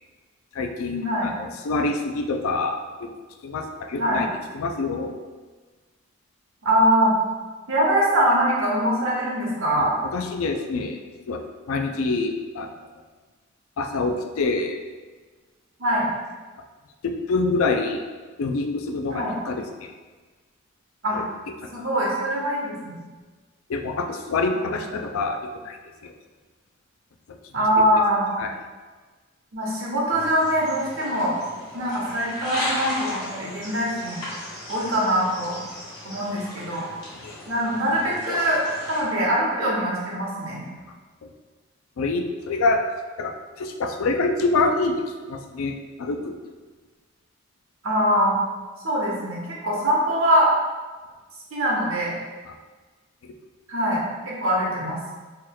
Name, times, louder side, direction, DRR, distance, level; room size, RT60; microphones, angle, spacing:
voice 1, 0.5-3.1 3.4-4.3 4.5-5.1 10.1-11.0 11.3-11.4 11.7-12.7 13.8-14.8 17.0-18.0 18.4-19.9 21.1-21.2 21.8-21.9 23.7-25.4 25.6-25.8 26.0-26.1 28.4-28.5 37.2-37.3 42.0-42.8 43.2-46.3 53.2-53.3, left 3 dB, 80° left, 5 dB, 0.4 m, -26 dB
voice 2, 6.6-7.2 7.7-9.9 15.8-16.1 19.1-19.4 21.0-21.2 21.7-23.0 24.6-24.7 27.5-28.3 29.5-31.4 31.7-34.2 34.7-35.6 36.0-36.8 37.5-38.6 38.9-40.6 47.8-48.4 48.8-50.5 51.5-52.1 53.7-55.0, equal, 75° right, -4 dB, 1.0 m, -23 dB
sound 1, 30.1-39.0, left 1 dB, 20° left, 1.3 m, -35 dB
4.5 x 3.1 x 2.3 m, 1.3 s
head